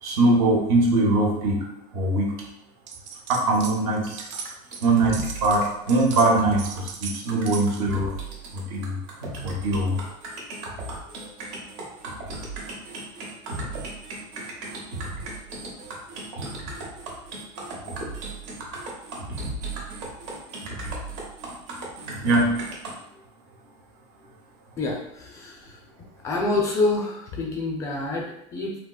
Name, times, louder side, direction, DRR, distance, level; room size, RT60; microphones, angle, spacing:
voice 1, 0.0-2.4 3.3-4.2 4.8-8.1 8.5-9.0 9.4-10.0 22.2-22.6, right 2 dB, 50° right, 1 dB, 0.7 m, -22 dB
sound 1, 2.9-3.8 4.0-7.9, right 6 dB, 90° right, 0.5 m, -38 dB
sound 2, 4.1-22.9, right 2 dB, 75° right, 1.0 m, -36 dB
voice 2, 24.8-25.8 26.2-28.8, left 2 dB, 20° left, -1 dB, 0.3 m, -27 dB
3.5 x 2.8 x 2.3 m, 0.79 s
supercardioid pair, 175°, 15 cm